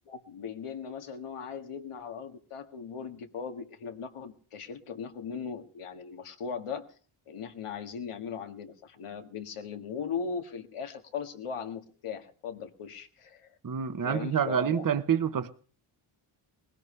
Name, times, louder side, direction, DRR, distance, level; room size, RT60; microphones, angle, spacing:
voice 1, 0.1-6.9 7.3-13.5 14.0-14.8, left 6 dB, 90° left, 1.8 m, -38 dB
voice 2, 13.6-15.5, right 8 dB, 40° right, 0.9 m, -27 dB
20.5 x 16.5 x 3.2 m
wide cardioid pair, 140°, 50 cm